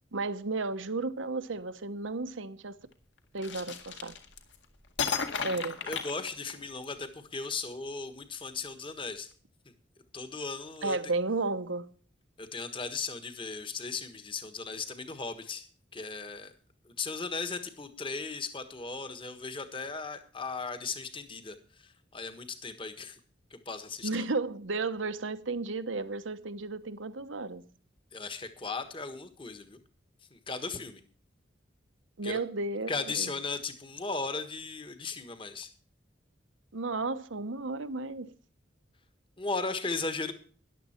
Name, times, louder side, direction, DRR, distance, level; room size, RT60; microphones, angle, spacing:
voice 1, 0.1-2.8 3.3-4.2 5.4-5.8 10.8-11.9 24.0-27.6 32.2-32.9 33.2-33.3 36.7-38.3, right 3 dB, 85° right, 1.0 m, -33 dB
sound 1, 3.4-4.6 5.0-6.8, left 6 dB, 70° left, 1.9 m, -34 dB
voice 2, 5.4-9.3 10.1-11.0 12.4-15.7 15.9-16.5 16.8-23.2 23.5-24.2 28.1-29.8 30.3-31.0 32.2-32.4 32.9-35.7 39.4-40.3, left 4 dB, 25° left, 1.4 m, -37 dB
14.0 x 11.0 x 4.4 m
head